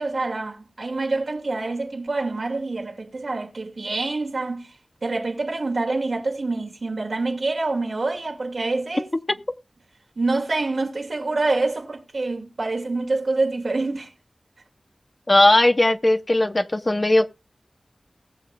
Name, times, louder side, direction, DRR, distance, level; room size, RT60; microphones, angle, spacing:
voice 1, 0.0-4.7 5.0-9.1 10.2-14.1, right 3 dB, 80° right, 2.1 m, -26 dB
voice 2, 15.3-17.3, left 1 dB, 40° left, 1.0 m, -18 dB
19.5 x 6.9 x 2.3 m
cardioid pair, 40°, 0 cm